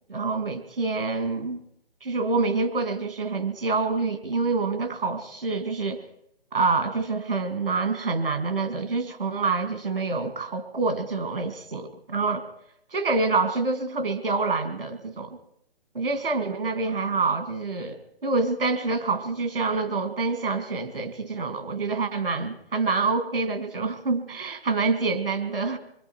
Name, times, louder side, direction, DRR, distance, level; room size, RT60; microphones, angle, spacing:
voice 1, 0.1-1.6 2.0-6.0 6.5-12.4 12.9-15.4 16.0-25.8, right 3 dB, 65° right, 7 dB, 2.3 m, -26 dB
28.0 x 22.0 x 4.6 m, 0.73 s
figure-of-eight pair, 140°, 30 cm